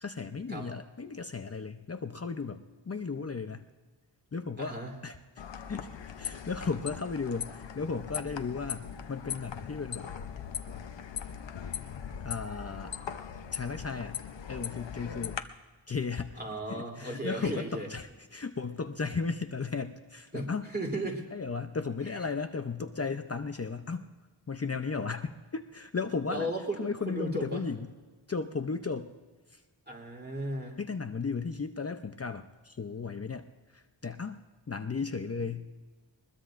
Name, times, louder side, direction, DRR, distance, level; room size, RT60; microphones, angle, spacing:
voice 1, 0.0-3.7 4.3-5.4 5.7-10.1 12.2-12.9 13.5-14.2 14.5-15.4 15.9-16.4 16.7-20.7 21.3-24.1 24.5-27.9 28.3-29.1 29.5-29.6 30.8-35.7, left 4 dB, 35° left, 7 dB, 0.6 m, -35 dB
voice 2, 4.6-4.9 16.4-17.9 20.3-20.5 20.7-21.2 26.3-27.6 29.9-30.8, right 1 dB, 20° right, 0 dB, 3.2 m, -35 dB
sound 1, 5.4-15.4, left 8 dB, 75° left, 0.8 m, -40 dB
22.0 x 21.0 x 2.6 m, 1.4 s
wide cardioid pair, 90°, 44 cm